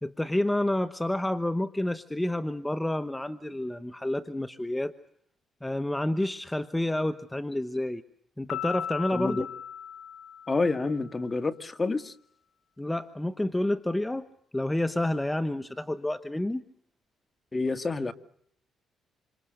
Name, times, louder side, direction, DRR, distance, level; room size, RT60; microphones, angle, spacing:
voice 1, 0.0-4.9 5.6-8.0 8.4-9.5 12.8-14.2 14.5-16.6, left 1 dB, 10° left, 1.2 m, -29 dB
Piano, 8.5-11.1, left 9 dB, 65° left, 3.3 m, -37 dB
voice 2, 9.1-9.4 10.5-12.1 17.5-18.1, left 3 dB, 25° left, 1.9 m, -28 dB
27.5 x 27.5 x 6.6 m
cardioid pair, 90°, 0 cm